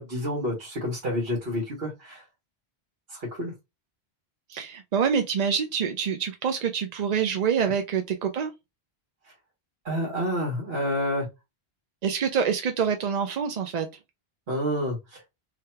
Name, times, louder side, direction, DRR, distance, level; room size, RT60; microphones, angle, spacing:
voice 1, 0.0-2.2 3.1-3.5 9.8-11.3 14.5-15.2, equal, 70° right, 1.6 m, -29 dB
voice 2, 4.5-8.5 12.0-13.9, right 7 dB, 55° right, 0.5 m, -26 dB
3.3 x 2.3 x 4.3 m
omnidirectional pair, 1.1 m